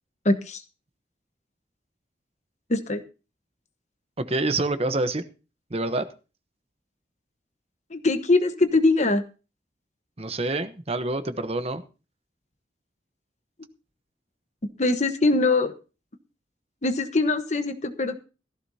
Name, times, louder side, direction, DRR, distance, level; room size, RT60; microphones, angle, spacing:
voice 1, 0.2-0.6 2.7-3.0 7.9-9.2 14.8-15.7 16.8-18.2, left 2 dB, 40° left, 9 dB, 1.2 m, -22 dB
voice 2, 4.2-5.2 5.7-6.0 10.2-11.8, right 2 dB, 35° right, 10 dB, 1.0 m, -27 dB
16.0 x 14.5 x 2.8 m, 0.33 s
head